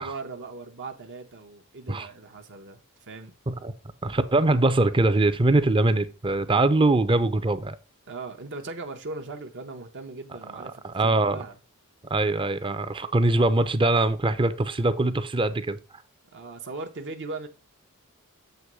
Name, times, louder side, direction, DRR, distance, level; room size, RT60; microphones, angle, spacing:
voice 1, 0.0-3.3 8.1-11.6 16.3-17.5, right 3 dB, 55° right, 0.9 m, -39 dB
voice 2, 4.0-7.8 10.5-11.4 12.1-15.8, right 2 dB, 25° right, 0.6 m, -23 dB
7.9 x 3.0 x 6.1 m
head